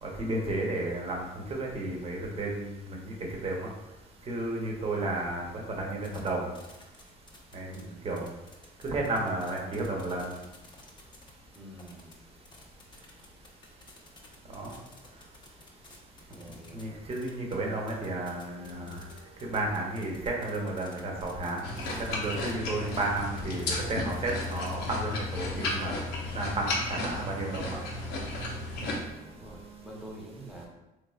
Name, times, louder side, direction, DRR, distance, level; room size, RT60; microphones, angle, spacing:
voice 1, 0.0-3.1 3.4-3.7 4.3-6.5 7.5-8.3 8.8-10.3 14.5-14.8 16.7-19.0 19.4-21.6 22.0-26.0 26.3-27.8, right 2 dB, 35° right, -1 dB, 0.8 m, -32 dB
voice 2, 4.9-5.5 7.6-8.2 11.5-12.1 14.5-14.9 16.3-17.1 28.8-30.7, right 1 dB, ahead, -3 dB, 0.8 m, -48 dB
sound 1, 6.0-6.3 6.6-7.8 8.1-17.5 17.9-22.5 22.9-24.9, left 3 dB, 25° left, 0.6 m, -53 dB
sound 2, 18.2-30.0, right 3 dB, 80° right, 1.3 m, -55 dB
sound 3, 21.6-29.0, left 2 dB, 85° left, 0.7 m, -34 dB
3.4 x 3.2 x 2.3 m, 0.99 s
cardioid pair, 110°, 17 cm